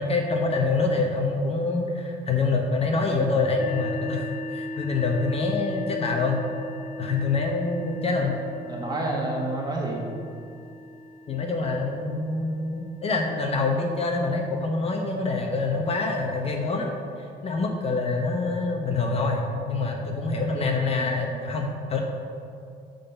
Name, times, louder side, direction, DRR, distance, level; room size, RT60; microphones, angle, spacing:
voice 1, 0.0-6.4 7.0-8.4 11.3-16.9 17.4-22.0, left 3 dB, 35° left, 2 dB, 0.9 m, -26 dB
sound 1, 3.6-15.1, left 2 dB, 75° left, 0.7 m, -39 dB
voice 2, 8.6-10.0 18.0-18.3 20.5-21.4, right 2 dB, 25° right, -2 dB, 1.6 m, -31 dB
8.1 x 4.0 x 6.9 m, 2.4 s
cardioid pair, 110°, 17 cm